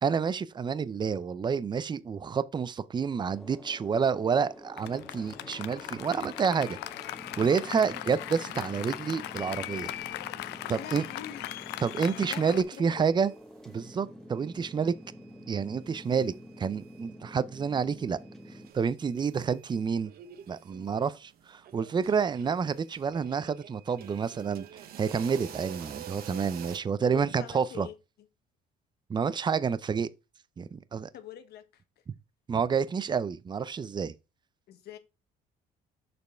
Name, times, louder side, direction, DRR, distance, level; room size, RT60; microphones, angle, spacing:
voice 1, 0.0-6.8 7.4-9.9 10.7-11.0 11.8-13.3 13.7-14.9 15.5-18.2 18.7-20.1 20.5-24.7 25.0-27.9 29.1-30.1 30.6-31.1 32.5-34.1, right 6 dB, 25° right, 0.6 m, -29 dB
sound 1, 3.3-18.7, equal, 5° left, 1.2 m, -48 dB
Applause, 4.8-12.6, left 15 dB, 85° left, 0.6 m, -39 dB
voice 2, 10.7-11.5 12.1-13.1 27.0-27.9 31.1-31.8 34.7-35.0, left 9 dB, 70° left, 1.3 m, -44 dB
sound 2, 12.3-13.7 14.0-17.3 17.6-17.7 18.2-26.8, right 10 dB, 65° right, 1.1 m, -48 dB
6.8 x 5.2 x 4.5 m
cardioid pair, 110°, 17 cm